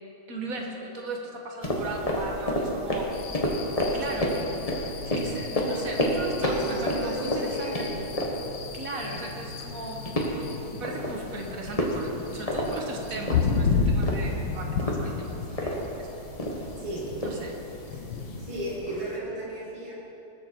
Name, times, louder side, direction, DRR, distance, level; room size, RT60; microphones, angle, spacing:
voice 1, 0.3-3.1 3.9-4.4 5.0-7.9 8.7-10.3 10.7-16.3 17.2-17.6, right 2 dB, 45° right, 1 dB, 1.7 m, -37 dB
sound 1, 1.6-18.8, equal, 20° left, 1.2 m, -31 dB
sound 2, 3.1-19.2, left 5 dB, 75° left, 1.7 m, -33 dB
sound 3, 4.3-11.1, left 3 dB, 45° left, 2.9 m, -44 dB
voice 2, 6.4-8.2 8.7-9.4 16.8-17.2 17.9-18.0 18.4-19.9, right 1 dB, 75° right, -7 dB, 3.5 m, -35 dB
20.0 x 7.2 x 4.6 m, 2.9 s
omnidirectional pair, 2.2 m